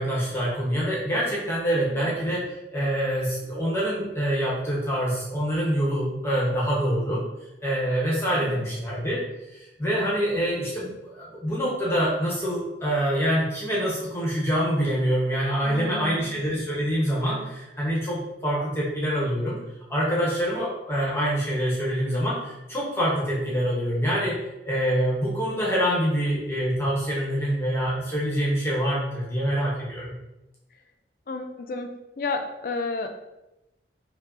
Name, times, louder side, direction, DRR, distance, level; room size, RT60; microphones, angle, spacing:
voice 1, 0.0-2.4 2.7-7.2 7.6-19.6 19.9-24.4 24.6-30.1, equal, 15° left, -6 dB, 0.8 m, -25 dB
voice 2, 1.7-2.1 8.4-8.7 15.6-16.3 31.3-33.1, left 3 dB, 50° left, 5 dB, 0.3 m, -32 dB
5.2 x 2.3 x 2.5 m, 0.95 s
head